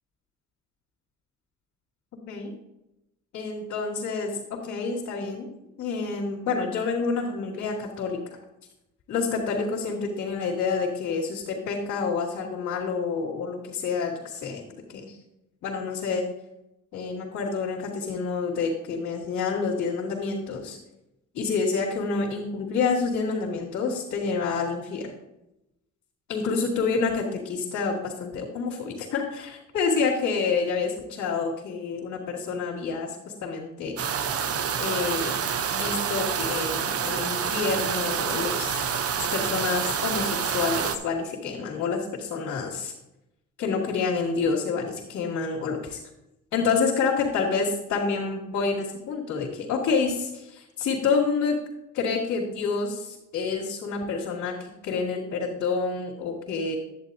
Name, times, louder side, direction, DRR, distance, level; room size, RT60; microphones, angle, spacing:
voice 1, 3.3-5.5 5.8-8.2 9.1-14.6 14.9-15.2 15.6-16.3 16.9-20.8 21.3-25.1 26.3-33.9 34.8-35.4 35.7-38.9 39.2-42.9 43.6-46.0 46.5-51.6 51.9-56.8, left 4 dB, 75° left, -7 dB, 2.1 m, -28 dB
sound 1, 34.0-41.0, right 7 dB, 50° right, 0.8 m, -27 dB
10.5 x 8.8 x 2.7 m, 0.90 s
cardioid pair, 90°, 30 cm